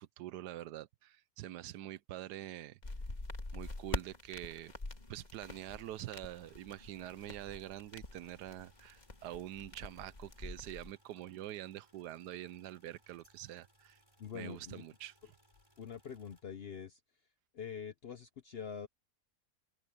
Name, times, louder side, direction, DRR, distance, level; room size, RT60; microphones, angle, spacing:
voice 1, 0.0-2.8 3.5-4.7 5.1-14.0 14.3-15.1, right 13 dB, 85° right, 1.2 m, -45 dB
sound 1, 2.8-10.9, left 2 dB, 25° left, 1.9 m, -45 dB
sound 2, 5.6-16.4, equal, 15° right, 7.6 m, -70 dB
voice 2, 14.2-14.8 15.2-15.3 15.8-17.0 17.5-18.9, left 7 dB, 55° left, 0.7 m, -45 dB
open air
omnidirectional pair, 1.7 m